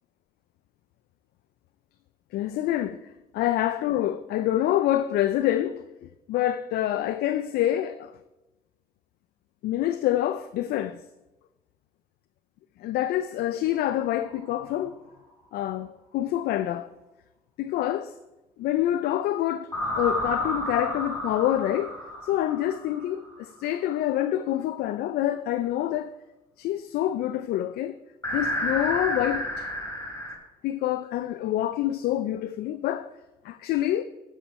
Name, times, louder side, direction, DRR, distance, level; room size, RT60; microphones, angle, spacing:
voice 1, 2.3-3.0 3.3-5.8 6.3-8.1 9.6-11.0 12.8-15.0 15.5-16.9 17.6-18.1 18.6-19.7 20.0-21.9 22.3-26.1 26.6-28.0 28.3-29.7 30.6-33.1 33.4-34.0, left 12 dB, 85° left, 0.4 m, -26 dB
sound 1, 13.8-14.6 19.7-23.4 28.2-30.4, equal, 20° left, 3.5 m, -31 dB
9.1 x 7.5 x 4.6 m
supercardioid pair, 70°, 16 cm